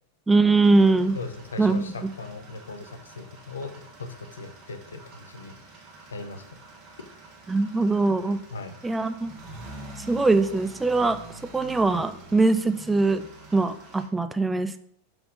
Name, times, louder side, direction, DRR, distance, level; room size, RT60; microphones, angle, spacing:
voice 1, 0.3-1.2 1.6-2.1 7.5-8.4 8.8-9.3 10.1-11.2 11.5-14.8, right 3 dB, 10° right, 11 dB, 0.5 m, -22 dB
sound 1, 0.6-14.1, right 2 dB, 35° right, 1.6 m, -46 dB
voice 2, 1.1-3.7 4.0-5.5 6.1-6.4 8.5-8.8, left 3 dB, 70° left, 7 dB, 0.9 m, -38 dB
6.0 x 5.9 x 5.1 m, 0.67 s
figure-of-eight pair, 90°, 0 cm